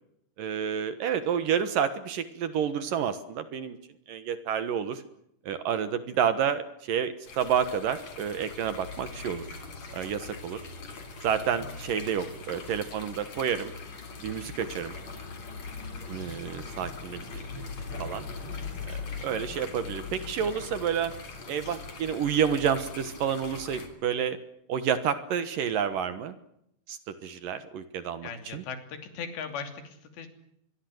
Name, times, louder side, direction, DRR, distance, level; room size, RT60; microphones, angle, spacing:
voice 1, 0.4-3.8 4.1-5.0 5.5-9.4 9.9-10.6 11.2-13.7 14.2-14.9 16.1-17.7 18.0-18.3 18.9-21.1 21.5-24.4 24.7-26.4 26.9-28.6, right 8 dB, 65° right, 12 dB, 2.6 m, -29 dB
sound 1, 7.3-23.9, left 4 dB, 40° left, 4.5 m, -41 dB
voice 2, 28.2-30.3, left 6 dB, 85° left, 7 dB, 5.1 m, -38 dB
25.0 x 22.5 x 7.9 m, 0.76 s
omnidirectional pair, 4.9 m